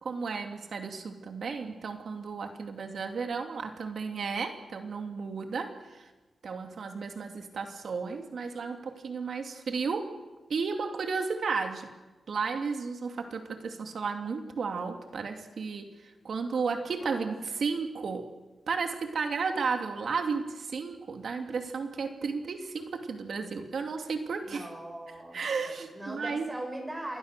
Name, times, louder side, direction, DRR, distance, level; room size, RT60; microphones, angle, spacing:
voice 1, 0.0-6.1 6.4-10.2 10.5-11.9 12.3-18.3 18.7-24.7 25.3-26.5, right 5 dB, 70° right, 5 dB, 2.7 m, -33 dB
voice 2, 17.0-17.6 24.4-27.2, right 1 dB, 15° right, 3 dB, 7.4 m, -41 dB
27.5 x 22.5 x 6.8 m, 1.2 s
wide cardioid pair, 95°, 0 cm